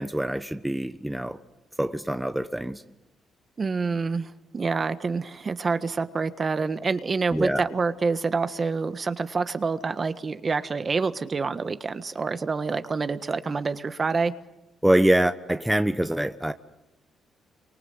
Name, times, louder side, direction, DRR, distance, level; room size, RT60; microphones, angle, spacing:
voice 1, 0.0-1.4 1.8-2.8 7.3-7.6 14.8-16.5, right 1 dB, 5° right, 9 dB, 1.0 m, -24 dB
voice 2, 3.6-14.3, right 4 dB, 35° right, 11 dB, 1.5 m, -27 dB
29.0 x 25.0 x 8.1 m, 0.97 s
cardioid pair, 90°, 0 cm